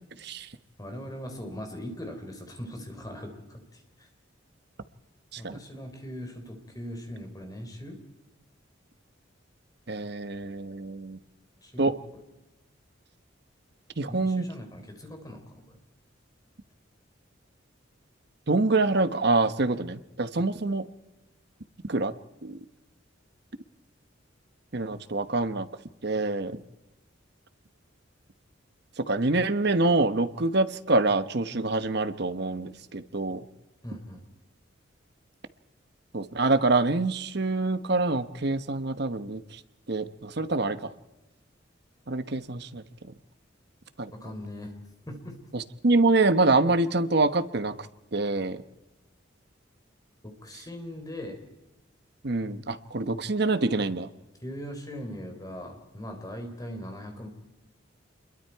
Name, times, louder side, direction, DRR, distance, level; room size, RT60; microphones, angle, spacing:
voice 1, 0.8-4.1 5.4-8.0 11.6-12.2 14.1-15.8 33.8-34.2 44.1-44.7 45.1-45.4 50.2-51.4 54.4-57.3, equal, 20° left, 5 dB, 3.7 m, -40 dB
voice 2, 9.9-11.2 11.8-11.9 14.0-14.4 18.5-20.8 21.9-22.1 22.4-22.6 24.7-25.7 26.0-26.6 29.1-33.4 36.1-39.4 39.9-40.9 42.1-42.8 44.0-44.1 45.5-47.7 48.1-48.6 52.2-54.1, right 3 dB, 55° right, 11 dB, 1.0 m, -25 dB
28.0 x 22.0 x 4.7 m, 1.0 s
head